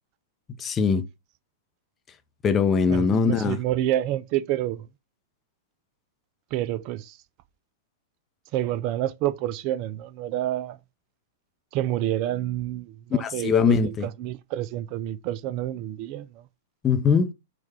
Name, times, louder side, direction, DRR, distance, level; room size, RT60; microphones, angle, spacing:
voice 1, 0.6-1.1 2.4-3.6 13.2-14.1 16.8-17.3, left 5 dB, 20° left, 0.5 m, -21 dB
voice 2, 2.9-4.9 6.5-7.2 8.5-10.8 11.7-16.5, right 13 dB, 40° right, 0.3 m, -28 dB
4.5 x 2.3 x 4.5 m
figure-of-eight pair, 100°, 0 cm